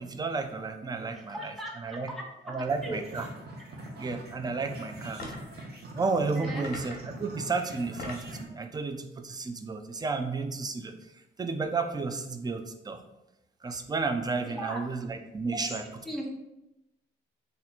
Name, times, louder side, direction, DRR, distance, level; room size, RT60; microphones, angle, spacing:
voice 1, 0.0-2.1 2.5-3.3 4.0-5.4 6.0-10.9 11.4-13.0 13.6-15.8, right 4 dB, 20° right, 7 dB, 0.4 m, -32 dB
voice 2, 1.1-2.6 2.8-3.0 6.4-6.7 14.5-14.8 15.8-16.3, right 1 dB, ahead, -2 dB, 0.8 m, -38 dB
sound 1, 2.7-8.4, right 1 dB, 55° right, 0.8 m, -43 dB
sound 2, 5.2-5.5 6.6-7.2 7.7-8.4, left 2 dB, 50° left, 1.1 m, -41 dB
2.8 x 2.6 x 4.1 m, 0.89 s
cardioid pair, 90°, 20 cm